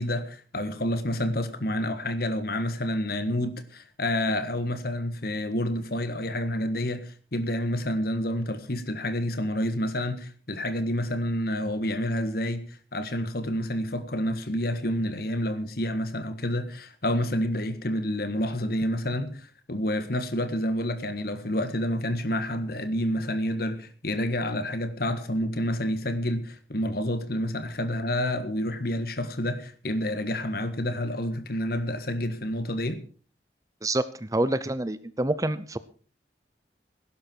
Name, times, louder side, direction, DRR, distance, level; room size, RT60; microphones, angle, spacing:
voice 1, 0.0-33.0, left 1 dB, 55° left, 1.7 m, -29 dB
voice 2, 33.8-35.8, right 1 dB, 20° right, 0.6 m, -27 dB
16.5 x 11.5 x 4.5 m
head